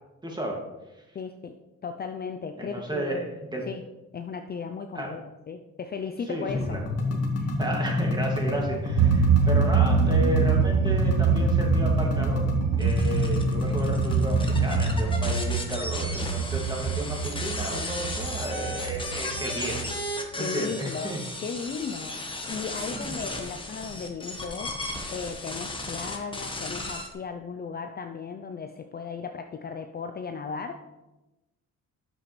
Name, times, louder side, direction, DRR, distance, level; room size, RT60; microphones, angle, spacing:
voice 1, 0.2-0.6 2.6-3.6 4.9-5.2 6.3-6.4 6.7-6.8 7.6-19.8 20.4-21.2 22.9-23.3, right 1 dB, 15° right, -1 dB, 2.2 m, -33 dB
voice 2, 1.1-1.6 1.8-3.3 3.7-3.8 4.1-6.8 7.1-7.5 20.4-30.9, left 5 dB, 35° left, 6 dB, 0.5 m, -36 dB
sound 1, 6.5-15.0, left 2 dB, 55° left, 1.8 m, -28 dB
sound 2, 9.0-19.9, right 6 dB, 70° right, 0.7 m, -25 dB
sound 3, 12.8-27.1, left 2 dB, 15° left, 1.2 m, -35 dB
8.5 x 7.6 x 3.2 m, 1.0 s
cardioid pair, 90°, 30 cm